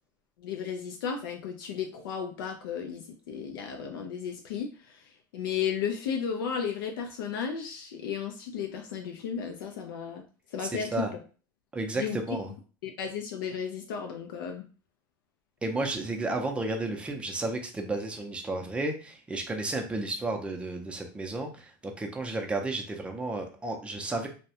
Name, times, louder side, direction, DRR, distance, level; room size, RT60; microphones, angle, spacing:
voice 1, 0.4-10.2 10.5-11.2 11.9-12.4 12.8-14.6, left 7 dB, 80° left, 3 dB, 0.4 m, -34 dB
voice 2, 10.8-11.1 11.7-12.5 15.6-24.3, right 2 dB, 10° right, 3 dB, 0.4 m, -32 dB
2.2 x 2.1 x 2.7 m, 0.37 s
supercardioid pair, 120°, 11 cm